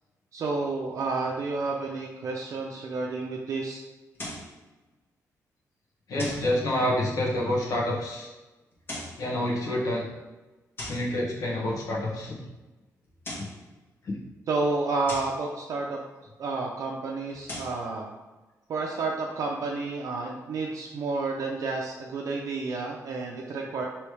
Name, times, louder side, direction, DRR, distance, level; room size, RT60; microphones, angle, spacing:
voice 1, 0.3-3.8 14.5-16.0 16.4-18.1 18.7-23.8, right 3 dB, 60° right, -1 dB, 0.5 m, -30 dB
sound 1, 4.1-4.5 6.2-6.5 8.7-9.2 10.8-11.1 13.0-13.6 15.1-15.4 17.3-17.8, left 1 dB, 35° left, 1.1 m, -38 dB
voice 2, 6.1-8.3 9.2-10.1 10.9-12.4, left 1 dB, 75° left, -3 dB, 1.1 m, -27 dB
3.2 x 3.0 x 4.7 m, 1.2 s
cardioid pair, 135°, 6 cm